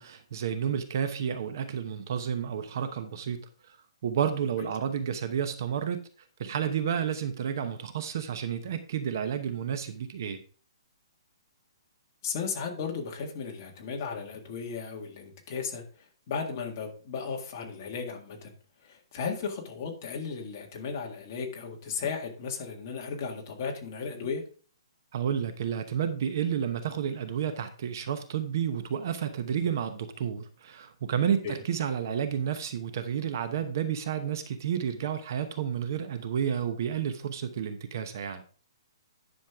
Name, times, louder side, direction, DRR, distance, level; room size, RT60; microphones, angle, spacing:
voice 1, 0.0-3.8 4.0-6.0 6.4-10.4 25.1-38.4, right 8 dB, 40° right, 9 dB, 0.9 m, -31 dB
voice 2, 12.2-15.8 16.3-18.5 18.8-24.4 31.4-31.6, left 5 dB, 30° left, 1 dB, 1.8 m, -35 dB
10.5 x 6.4 x 3.5 m, 0.40 s
hypercardioid pair, 175°, 3 cm